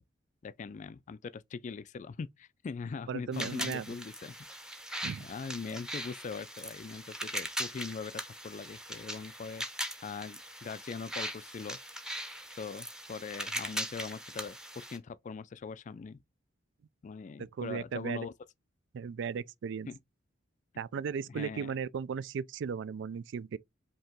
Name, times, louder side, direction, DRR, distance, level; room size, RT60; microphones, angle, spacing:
voice 1, 0.4-4.3 5.2-9.7 10.0-11.8 12.6-16.2 17.0-18.3 19.9-20.0 21.3-21.7, left 5 dB, 40° left, 0.3 m, -41 dB
voice 2, 3.1-3.9 5.0-5.2 17.4-18.3 18.9-19.9 20.8-23.6, right 6 dB, 65° right, 0.3 m, -36 dB
sound 1, 3.3-15.0, equal, 5° right, 0.7 m, -40 dB
5.3 x 2.8 x 3.6 m
head